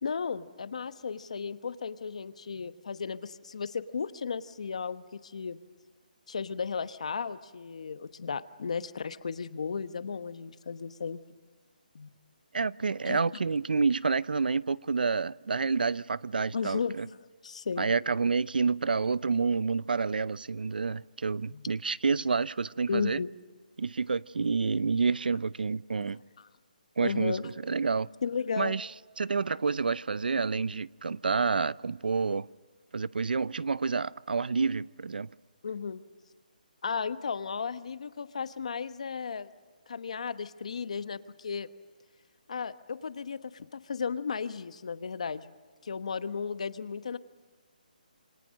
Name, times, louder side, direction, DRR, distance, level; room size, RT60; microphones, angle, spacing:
voice 1, 0.0-5.6 6.3-11.2 11.9-12.1 13.0-13.3 16.5-17.0 17.4-17.9 21.5-21.6 22.9-23.3 26.4-26.5 27.0-27.5 28.2-28.7 35.6-36.0 36.8-39.5 39.9-41.7 42.5-45.5 45.8-47.2, left 5 dB, 45° left, 1.1 m, -34 dB
voice 2, 12.5-17.1 17.8-23.2 23.8-26.2 27.0-28.1 28.6-28.9 29.2-32.5 32.9-35.3, right 4 dB, 85° right, 0.6 m, -29 dB
27.5 x 24.5 x 6.5 m
hypercardioid pair, 180°, 5 cm